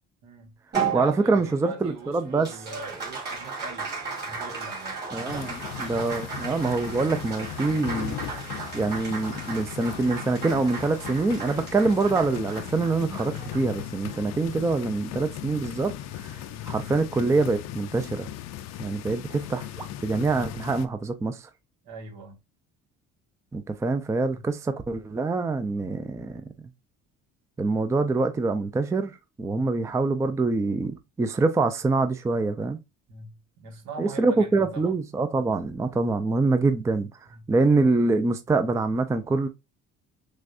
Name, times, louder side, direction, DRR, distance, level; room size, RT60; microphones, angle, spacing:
voice 1, 0.2-0.5 0.9-4.0 4.2-5.5 6.0-6.1 16.4-16.7 21.8-22.4 24.3-24.4 33.1-35.0 37.3-37.5, right 3 dB, 75° right, 1.3 m, -42 dB
Applause, 0.7-15.4, right 5 dB, 35° right, 2.4 m, -36 dB
voice 2, 0.9-2.5 5.1-8.2 8.7-16.4 16.6-18.3 18.8-21.5 23.5-26.4 27.6-32.8 34.0-37.1 37.5-39.5, right 3 dB, 10° right, 0.4 m, -25 dB
sound 1, 5.3-20.9, left 12 dB, 65° left, 0.5 m, -38 dB
6.2 x 2.3 x 2.5 m
cardioid pair, 105°, 29 cm